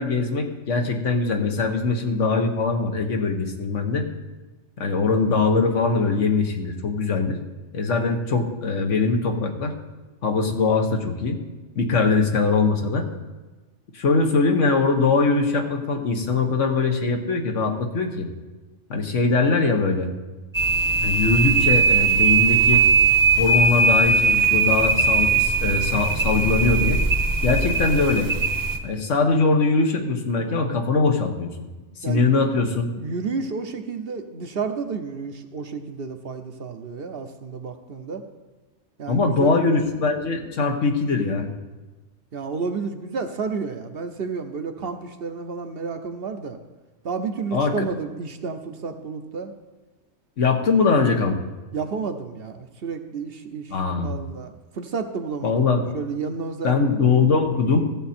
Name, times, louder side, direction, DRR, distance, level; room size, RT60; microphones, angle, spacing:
voice 1, 0.0-4.1 4.8-7.4 7.7-9.7 10.2-11.4 11.7-13.1 13.9-18.3 18.9-20.1 21.0-22.8 23.4-27.0 27.4-28.3 28.8-31.6 32.1-32.9 39.1-41.5 47.5-47.9 50.4-51.4 53.7-54.2 55.4-55.8 56.6-57.9, left 4 dB, 80° left, 4 dB, 1.5 m, -22 dB
sound 1, 20.5-28.8, right 4 dB, 20° right, 0.8 m, -19 dB
voice 2, 32.0-32.3 33.0-38.2 39.0-39.5 42.3-46.6 47.0-49.5 51.7-55.6 55.9-56.7, right 5 dB, 55° right, 7 dB, 0.9 m, -31 dB
14.5 x 7.5 x 4.3 m, 1.2 s
omnidirectional pair, 1.2 m